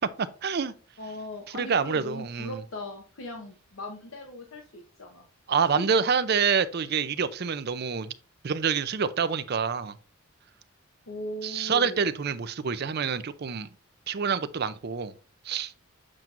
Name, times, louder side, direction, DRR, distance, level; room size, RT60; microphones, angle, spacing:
voice 1, 0.2-0.7 1.5-2.6 5.5-8.1 8.4-10.0 11.4-13.7 14.1-15.1 15.4-15.7, right 6 dB, 45° right, 0.5 m, -27 dB
voice 2, 1.0-5.2 5.8-5.9 11.1-12.1, left 1 dB, 65° left, 1.0 m, -39 dB
7.5 x 5.8 x 2.5 m
head